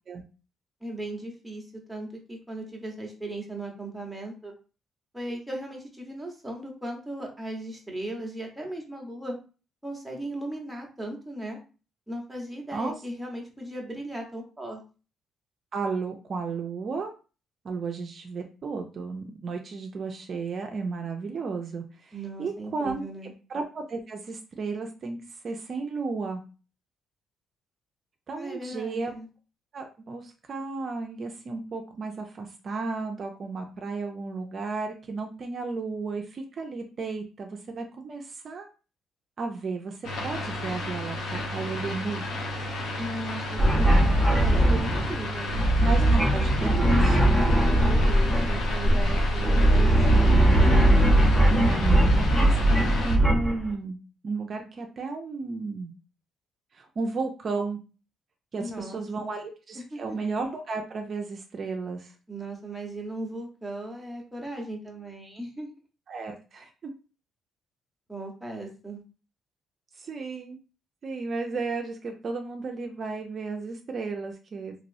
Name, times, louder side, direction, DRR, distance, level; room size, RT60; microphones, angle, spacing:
voice 1, 0.8-4.5 5.1-9.4 9.8-11.6 12.1-14.8 22.1-23.3 28.3-29.3 43.0-45.6 47.5-50.9 58.5-59.3 59.7-60.0 62.3-65.7 68.1-69.0, right 1 dB, 5° right, -1 dB, 1.1 m, -37 dB
voice 2, 15.7-17.1 17.6-23.0 23.5-26.4 28.3-29.1 29.7-38.7 39.4-42.2 45.8-47.2 51.5-52.0 52.3-54.0 54.2-55.9 56.7-57.8 58.5-62.1 66.1-66.9 69.9-70.6 71.0-74.8, right 4 dB, 50° right, 3 dB, 0.5 m, -33 dB
sound 1, 40.0-53.2, left 1 dB, 80° left, 1.0 m, -33 dB
sound 2, 43.6-53.7, right 1 dB, 20° left, 1.0 m, -20 dB
3.0 x 2.9 x 2.6 m, 0.35 s
cardioid pair, 90°, 0 cm